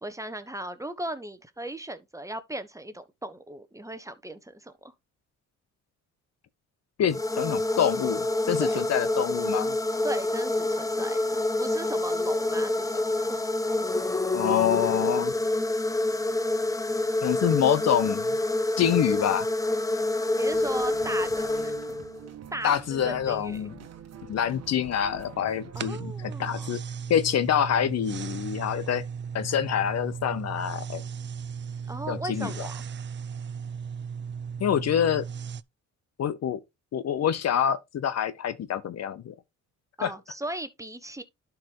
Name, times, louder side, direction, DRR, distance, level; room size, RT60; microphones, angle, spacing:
voice 1, 0.0-4.9 8.6-8.8 10.0-13.4 20.3-21.7 22.5-23.7 25.7-26.8 31.9-32.8 40.0-41.2, right 1 dB, 10° right, 1.2 m, -37 dB
voice 2, 7.0-9.7 14.3-15.3 17.2-18.3 18.8-19.5 22.6-23.7 24.3-26.8 27.1-29.0 29.3-31.0 32.1-32.5 34.6-35.2 36.2-36.6 36.9-39.3 40.0-40.1, left 9 dB, 60° left, 0.9 m, -26 dB
sound 1, 7.1-22.3, left 2 dB, 10° left, 0.8 m, -27 dB
sound 2, 20.5-25.9, right 8 dB, 55° right, 1.3 m, -45 dB
sound 3, 25.7-35.6, right 6 dB, 40° right, 0.5 m, -36 dB
11.5 x 4.7 x 3.1 m
cardioid pair, 90°, 30 cm